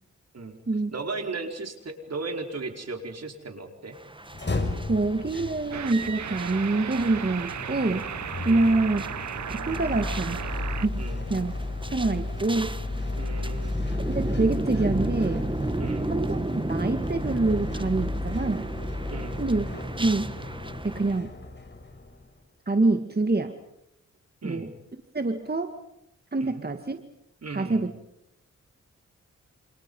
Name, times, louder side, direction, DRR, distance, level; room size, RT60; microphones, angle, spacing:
voice 1, 0.9-4.0 8.4-8.8 11.0-11.2 13.2-13.9 15.8-16.1 19.1-19.4 24.4-24.7 26.4-26.6 27.4-27.8, right 3 dB, 60° right, 4 dB, 4.8 m, -36 dB
sound 1, 3.9-21.2, right 2 dB, 15° right, 1.5 m, -35 dB
sound 2, 4.2-22.4, left 2 dB, 40° left, 5.9 m, -34 dB
voice 2, 4.9-8.1 8.4-9.0 9.7-10.4 10.8-11.0 11.3-11.5 11.9-12.8 14.1-15.5 16.1-18.7 19.4-19.7 20.0-20.3 20.8-21.3 22.7-23.6 24.4-24.7 25.1-25.7 26.3-27.0 27.5-27.9, right 2 dB, 35° right, 6 dB, 2.1 m, -26 dB
sound 3, 5.7-10.9, right 8 dB, 75° right, 1.0 m, -35 dB
28.5 x 27.5 x 5.6 m, 0.78 s
cardioid pair, 60°, 29 cm